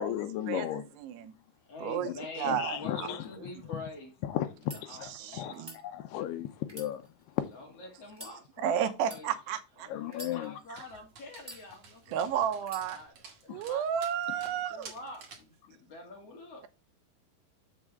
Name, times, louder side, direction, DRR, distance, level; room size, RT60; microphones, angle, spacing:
voice 1, 0.0-0.9 2.0-2.1 2.4-3.3 4.2-7.6 9.9-10.6 13.5-13.6, left 12 dB, 80° left, 2.8 m, -35 dB
voice 2, 1.0-1.3 1.8-2.1 2.4-3.1 5.2-5.7 8.6-9.9 12.1-13.0 13.5-14.9, right 9 dB, 85° right, 3.0 m, -32 dB
voice 3, 1.7-4.1 4.7-5.7 7.5-9.3 9.8-13.1 13.5-13.8 14.4-16.6, left 3 dB, 40° left, 3.0 m, -46 dB
sound 1, 4.5-4.8 5.5-5.8 6.6-7.5 8.1-8.4 9.0-9.2 10.1-10.8 11.4-12.0 12.6-12.9, right 1 dB, 5° right, 3.2 m, -47 dB
Dog, 10.8-15.6, right 5 dB, 50° right, 2.6 m, -52 dB
7.4 x 7.3 x 3.5 m
omnidirectional pair, 4.7 m